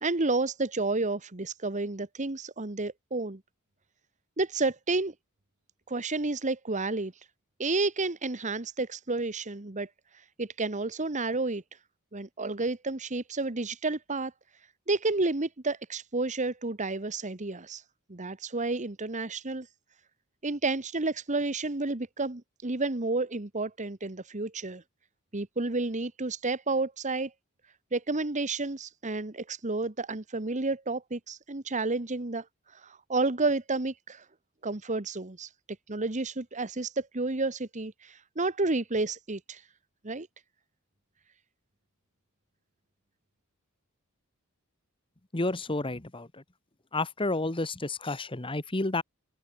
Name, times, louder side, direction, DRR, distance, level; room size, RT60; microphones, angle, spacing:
voice 1, 0.0-3.4 4.4-5.1 5.9-7.3 7.6-11.6 12.1-14.3 14.9-17.8 18.1-19.7 20.4-24.8 25.3-27.3 27.9-34.2 34.6-35.5 35.9-39.6 40.0-40.3, right 3 dB, 35° right, 1.3 m, -31 dB
voice 2, 45.3-46.4 46.9-49.0, left 2 dB, 25° left, 1.3 m, -30 dB
head